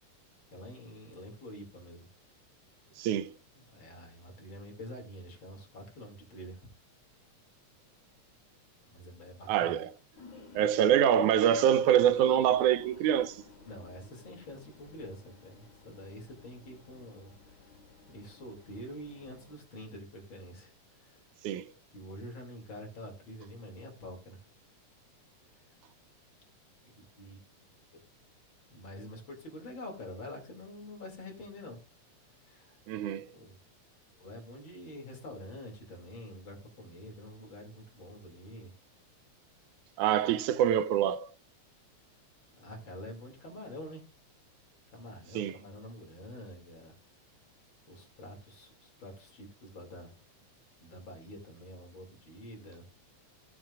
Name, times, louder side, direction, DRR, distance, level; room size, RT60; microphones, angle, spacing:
voice 1, 0.5-2.1 3.5-6.7 8.9-9.8 13.6-17.3 18.1-21.2 21.9-24.4 26.8-27.6 28.7-31.8 32.4-32.8 33.3-33.6 34.2-38.7 42.5-44.0 44.9-46.9 47.9-50.1 50.8-52.8, left 1 dB, 40° left, 3.2 m, -46 dB
voice 2, 3.0-3.3 9.5-9.9 10.5-13.4 21.4-21.7 32.9-33.3 40.0-41.3 45.4-45.5, right 10 dB, 85° right, 2.1 m, -25 dB
sound 1, 10.2-19.6, left 2 dB, 65° left, 3.7 m, -52 dB
16.5 x 7.6 x 2.5 m
omnidirectional pair, 3.5 m